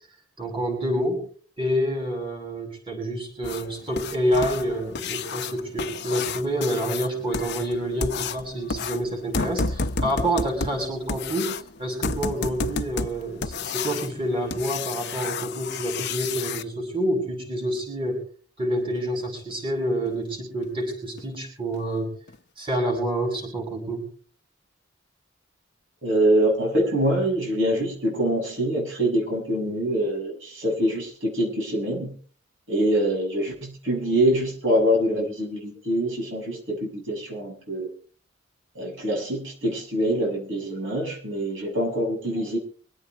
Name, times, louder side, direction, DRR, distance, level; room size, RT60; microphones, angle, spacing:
voice 1, 0.4-1.3 1.6-18.2 18.6-22.1 22.6-24.0, right 1 dB, 25° right, 1 dB, 7.2 m, -28 dB
sound 1, 3.4-16.6 19.0-19.1 19.5-19.6 20.1-20.2 20.6-20.7 21.2-21.4 21.7-21.8 22.3-22.4, left 4 dB, 55° left, 0.8 m, -31 dB
voice 2, 26.0-32.1 32.7-37.9 38.7-42.6, right 1 dB, 70° right, -1 dB, 6.6 m, -24 dB
25.0 x 8.7 x 4.6 m, 0.42 s
head